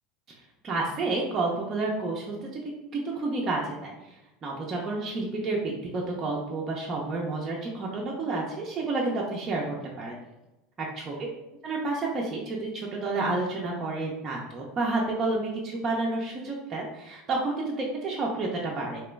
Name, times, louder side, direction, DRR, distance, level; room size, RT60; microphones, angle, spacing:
voice 1, 0.6-2.6 2.9-4.1 4.4-10.2 10.8-11.1 11.6-19.0, right 3 dB, 35° right, -3 dB, 0.6 m, -30 dB
3.0 x 2.9 x 3.3 m, 0.99 s
figure-of-eight pair, 75°, 0 cm